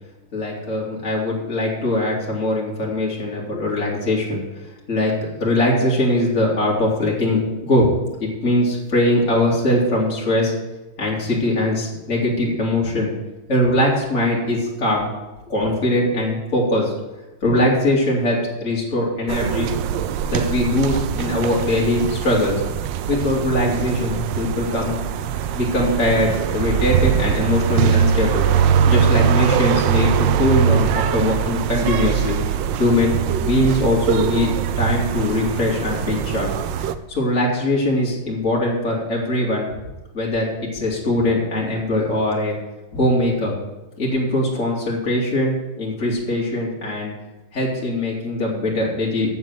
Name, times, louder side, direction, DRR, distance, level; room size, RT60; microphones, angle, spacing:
voice 1, 0.3-5.1 5.4-7.9 8.2-10.5 11.0-13.1 13.5-15.1 15.5-16.9 17.4-19.7 20.2-22.6 23.1-25.0 25.5-28.4 28.9-32.4 32.8-34.5 34.8-36.5 37.1-39.7 40.1-42.5 42.9-43.5 44.0-47.1 47.5-49.3, left 1 dB, 35° left, -4 dB, 2.8 m, -21 dB
sound 1, 19.3-36.9, right 8 dB, 75° right, 1.2 m, -22 dB
7.6 x 7.3 x 8.0 m, 1.1 s
omnidirectional pair, 2.2 m